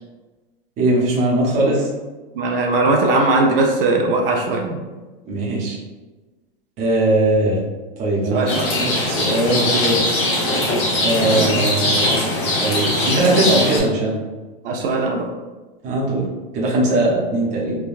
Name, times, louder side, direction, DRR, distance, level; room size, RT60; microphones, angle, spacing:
voice 1, 0.8-1.9 5.3-5.8 6.8-7.6 8.0-8.5 8.7-10.0 11.0-12.1 12.6-14.2 15.8-16.3 16.5-17.8, right 1 dB, 25° right, -4 dB, 0.7 m, -20 dB
voice 2, 2.3-4.8 8.3-8.7 14.6-15.3, right 2 dB, 70° right, 2 dB, 0.5 m, -19 dB
Rain, 8.5-13.8, left 1 dB, 45° left, 0.9 m, -20 dB
3.3 x 2.2 x 2.4 m, 1.2 s
supercardioid pair, 150°, 29 cm